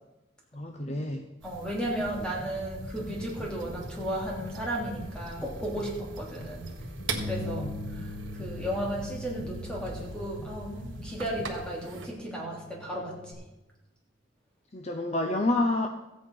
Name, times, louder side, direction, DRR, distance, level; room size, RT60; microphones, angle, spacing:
voice 1, 0.5-1.3 7.1-7.7 14.7-15.9, left 2 dB, 35° left, 4 dB, 0.7 m, -29 dB
voice 2, 1.4-6.7 7.2-13.2, right 1 dB, 5° left, -3 dB, 3.0 m, -34 dB
sound 1, 1.4-12.1, right 4 dB, 75° right, 1.5 m, -43 dB
sound 2, 2.0-11.5, equal, 75° left, 2.2 m, -43 dB
Bass guitar, 7.1-13.3, left 2 dB, 60° left, 4.8 m, -42 dB
14.5 x 8.6 x 5.4 m, 1.0 s
head